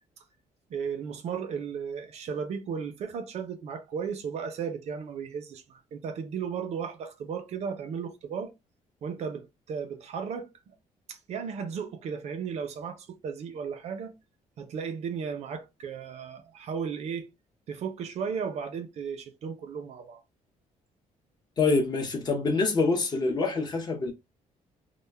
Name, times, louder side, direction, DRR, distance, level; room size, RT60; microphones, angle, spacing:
voice 1, 0.7-8.5 9.0-10.7 11.1-14.1 14.6-17.3 17.7-20.2, right 6 dB, 55° right, 0.4 m, -35 dB
voice 2, 21.6-24.1, left 3 dB, 30° left, 0.5 m, -26 dB
2.1 x 2.0 x 3.1 m
cardioid pair, 155°, 13 cm